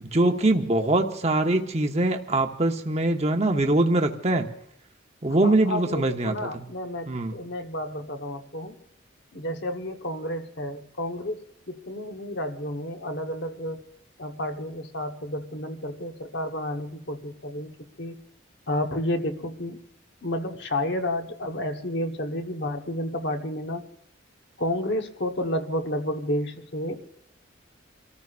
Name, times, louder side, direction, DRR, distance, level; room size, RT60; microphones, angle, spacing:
voice 1, 0.1-4.5 5.2-6.7 7.1-7.4, right 2 dB, 30° right, 4 dB, 0.9 m, -23 dB
voice 2, 5.4-8.8 9.3-11.4 11.7-13.8 14.2-17.7 18.0-18.1 18.7-19.8 20.2-23.8 24.6-27.0, left 1 dB, 55° left, 5 dB, 1.2 m, -31 dB
29.0 x 14.0 x 2.5 m, 0.72 s
head